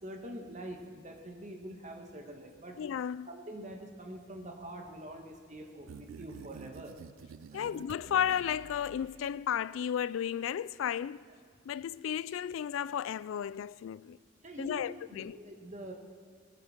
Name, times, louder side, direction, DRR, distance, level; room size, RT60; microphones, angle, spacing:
voice 1, 0.0-2.8 3.3-7.0 7.5-7.9 14.4-15.9, right 1 dB, 35° right, 1.6 m, -45 dB
voice 2, 2.8-3.3 7.5-11.2 11.7-14.2 14.6-15.4, left 9 dB, 80° left, 0.3 m, -33 dB
sound 1, 5.9-9.6, right 6 dB, 90° right, 0.4 m, -50 dB
20.0 x 15.0 x 4.5 m
head